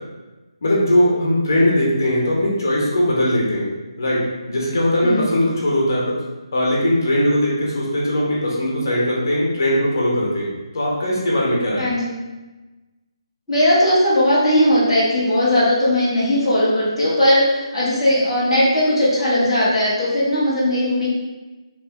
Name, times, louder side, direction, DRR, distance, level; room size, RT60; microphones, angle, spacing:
voice 1, 0.6-3.7 4.0-4.2 4.5-6.2 6.5-10.5 10.7-11.9, left 1 dB, 40° left, -4 dB, 0.9 m, -19 dB
voice 2, 5.0-5.3 11.8-12.1 13.5-21.1, left 1 dB, ahead, -18 dB, 0.7 m, -18 dB
3.3 x 3.0 x 3.5 m, 1.2 s
hypercardioid pair, 180°, 3 cm